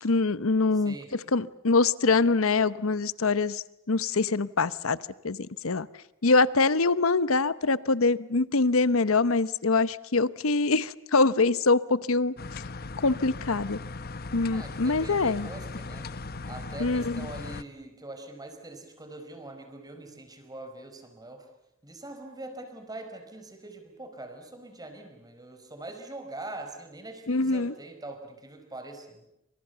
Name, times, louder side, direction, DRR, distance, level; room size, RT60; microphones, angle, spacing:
voice 1, 0.0-1.0 1.3-5.0 5.2-5.4 5.6-5.9 6.2-12.3 13.0-13.8 14.3-15.5 16.8-17.3 27.3-27.7, left 3 dB, 85° left, 16 dB, 1.0 m, -24 dB
voice 2, 0.7-1.1 14.5-16.1 16.5-21.5 21.8-29.3, right 2 dB, 20° right, 6 dB, 4.9 m, -43 dB
sound 1, 12.4-17.6, left 3 dB, 50° left, 1.0 m, -38 dB
29.5 x 26.5 x 6.9 m, 0.82 s
head